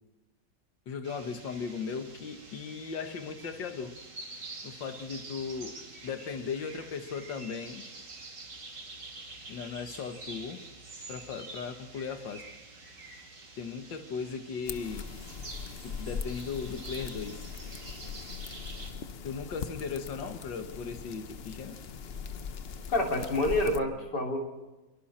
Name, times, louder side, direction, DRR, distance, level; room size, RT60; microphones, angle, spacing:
voice 1, 0.9-4.0 4.6-7.9 9.5-10.7 11.1-12.5 13.6-15.2 15.8-17.5 19.2-21.8, left 5 dB, 90° left, 2.1 m, -37 dB
sound 1, 1.0-18.9, right 3 dB, 70° right, 3.5 m, -47 dB
sound 2, 14.7-23.8, left 6 dB, 45° left, 0.8 m, -41 dB
voice 2, 22.9-24.4, left 1 dB, 70° left, 3.8 m, -27 dB
26.5 x 23.0 x 4.3 m
omnidirectional pair, 1.9 m